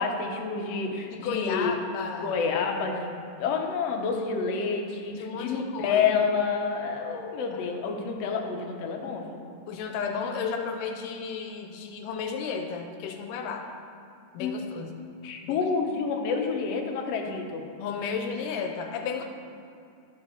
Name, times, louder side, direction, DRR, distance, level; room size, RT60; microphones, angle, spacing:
voice 1, 0.0-1.7 2.2-9.4 14.4-14.5 15.2-17.6, left 5 dB, 65° left, 2 dB, 1.8 m, -28 dB
voice 2, 1.1-2.4 5.1-6.1 7.5-7.6 9.7-13.7 14.3-15.0 15.4-15.7 17.8-19.2, left 6 dB, 90° left, 4 dB, 2.2 m, -33 dB
12.0 x 4.8 x 6.3 m, 2.5 s
omnidirectional pair, 3.7 m